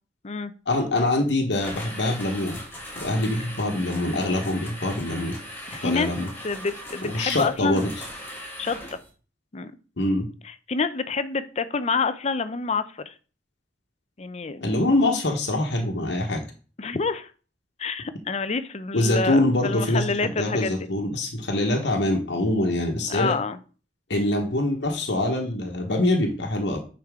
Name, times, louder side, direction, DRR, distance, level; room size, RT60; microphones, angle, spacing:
voice 1, 0.7-2.6 3.0-5.4 5.8-6.3 7.0-7.9 10.0-10.3 14.6-16.4 18.9-23.4 24.1-26.8, left 1 dB, 85° left, 2 dB, 1.3 m, -24 dB
sound 1, 1.5-9.1, left 1 dB, 15° left, 2.5 m, -39 dB
voice 2, 5.7-6.1 6.4-7.8 8.6-9.0 9.5-9.7 10.4-13.1 14.2-14.7 16.8-17.3 17.8-20.9 23.1-23.6, left 4 dB, 40° left, 12 dB, 0.6 m, -28 dB
9.2 x 4.7 x 3.7 m, 0.37 s
head